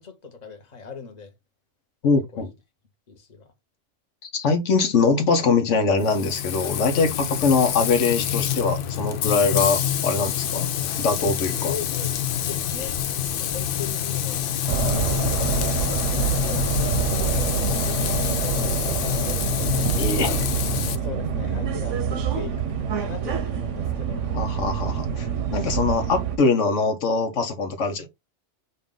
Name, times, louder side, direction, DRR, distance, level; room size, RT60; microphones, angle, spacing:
voice 1, 0.0-1.3 2.3-2.5 3.1-3.5 11.6-12.2 12.5-13.0 13.4-14.4 14.8-19.7 21.0-24.3, left 5 dB, 35° left, 1.2 m, -39 dB
voice 2, 2.0-2.5 4.2-10.7 11.0-11.7 20.0-20.3 24.3-28.1, left 4 dB, 85° left, 1.2 m, -22 dB
Frying (food), 6.0-21.0, left 10 dB, 60° left, 0.6 m, -26 dB
sound 1, 14.7-26.4, right 7 dB, 90° right, 1.1 m, -26 dB
5.4 x 2.6 x 3.7 m
omnidirectional pair, 1.2 m